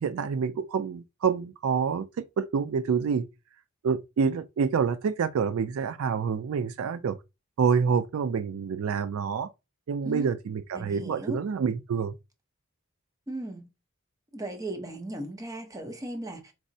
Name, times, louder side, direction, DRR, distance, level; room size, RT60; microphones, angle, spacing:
voice 1, 0.0-3.3 3.8-7.2 7.6-9.5 9.9-12.1, right 6 dB, 75° right, 0.4 m, -27 dB
voice 2, 10.7-11.4 13.3-13.7 14.3-16.5, right 1 dB, 15° right, 0.7 m, -36 dB
4.6 x 2.0 x 2.6 m
head